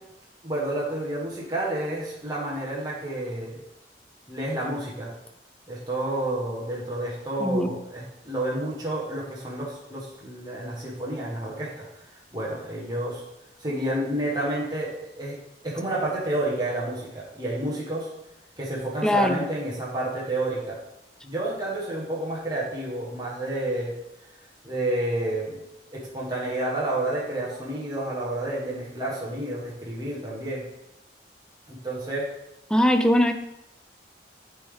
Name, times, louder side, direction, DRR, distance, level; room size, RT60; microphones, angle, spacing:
voice 1, 0.4-3.5 4.3-5.1 5.7-12.0 12.3-13.2 13.6-15.4 15.6-18.1 18.6-20.8 21.2-24.0 24.6-25.6 25.9-30.7 31.7-32.3, right 1 dB, 25° right, -6 dB, 1.2 m, -30 dB
voice 2, 7.4-7.7 19.0-19.5 32.7-33.3, left 1 dB, 5° left, 6 dB, 0.4 m, -21 dB
9.2 x 3.5 x 3.6 m, 0.88 s
head